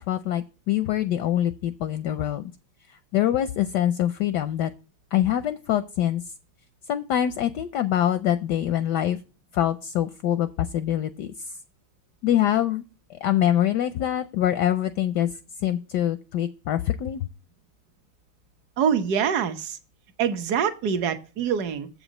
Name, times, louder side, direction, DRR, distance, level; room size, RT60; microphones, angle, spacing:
voice 1, 0.1-2.5 3.1-4.7 5.1-6.2 6.9-9.2 9.5-10.5 10.7-11.3 12.2-12.8 13.2-15.3 15.6-17.3, left 11 dB, 75° left, 12 dB, 1.0 m, -24 dB
voice 2, 18.8-19.8 20.2-21.9, right 7 dB, 55° right, 9 dB, 1.3 m, -25 dB
7.7 x 5.0 x 6.4 m, 0.34 s
omnidirectional pair, 2.3 m